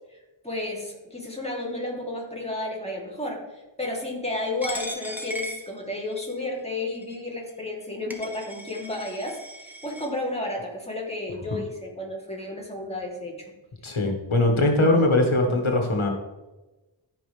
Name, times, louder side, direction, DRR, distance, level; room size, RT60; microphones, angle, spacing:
voice 1, 0.1-13.5, left 2 dB, 15° left, -2 dB, 3.1 m, -32 dB
Coin (dropping), 4.6-6.4 7.0-7.2 7.8-7.9 8.1-10.1, equal, 5° right, 1.5 m, -37 dB
voice 2, 13.8-16.1, left 2 dB, 85° left, 2 dB, 1.8 m, -21 dB
14.5 x 5.8 x 3.4 m, 1.1 s
wide cardioid pair, 45°, 47 cm